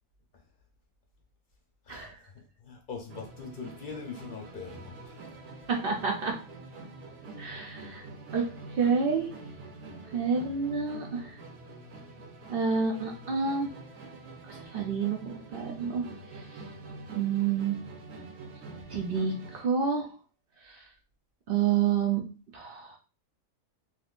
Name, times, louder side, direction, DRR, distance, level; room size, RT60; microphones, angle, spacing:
voice 1, 1.9-5.4, left 5 dB, 45° left, 0.7 m, -42 dB
Musical instrument, 3.1-19.8, right 2 dB, 90° right, 1.3 m, -45 dB
voice 2, 5.7-6.4 7.4-8.0 8.3-8.5 8.8-9.3 10.1-11.2 12.5-13.8 14.5-16.1 17.1-17.8 18.9-20.1 21.5-22.2 22.5-22.9, right 6 dB, 65° right, 0.5 m, -28 dB
3.5 x 2.7 x 2.4 m
omnidirectional pair, 1.5 m